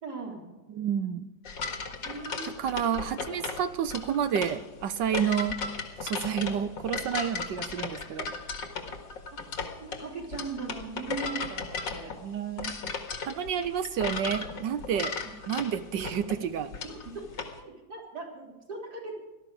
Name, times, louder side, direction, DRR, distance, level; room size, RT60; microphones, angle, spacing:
voice 1, 0.0-0.4 2.0-2.9 9.3-9.4 9.8-12.1 13.6-13.7 14.3-14.6 14.8-14.9 15.2-15.4 16.8-17.2 17.6-19.2, right 4 dB, 55° right, -1 dB, 4.2 m, -40 dB
voice 2, 0.7-1.3 2.6-5.6 6.0-8.3 12.2-12.7 13.3-15.1 15.5-16.7, right 8 dB, 75° right, 11 dB, 1.4 m, -30 dB
sound 1, 1.4-17.6, left 4 dB, 75° left, 2.5 m, -36 dB
18.0 x 13.0 x 4.9 m, 1.1 s
omnidirectional pair, 2.0 m